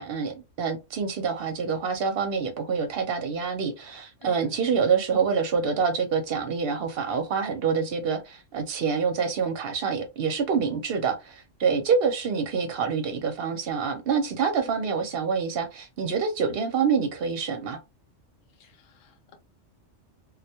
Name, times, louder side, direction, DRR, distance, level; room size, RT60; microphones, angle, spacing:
voice 1, 0.0-17.8, right 6 dB, 60° right, 0.7 m, -26 dB
voice 2, 4.2-4.8 14.6-15.1 18.5-19.3, left 5 dB, 80° left, 1.0 m, -49 dB
2.2 x 2.2 x 2.7 m
omnidirectional pair, 1.3 m